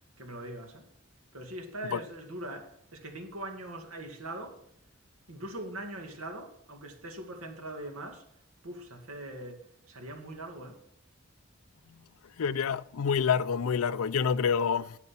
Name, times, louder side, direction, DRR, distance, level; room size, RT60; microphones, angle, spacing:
voice 1, 0.2-0.9 1.3-4.6 5.3-8.3 8.6-10.8, right 1 dB, 80° right, 2.1 m, -41 dB
voice 2, 12.4-15.0, left 6 dB, 80° left, 0.4 m, -27 dB
9.4 x 9.3 x 5.7 m
head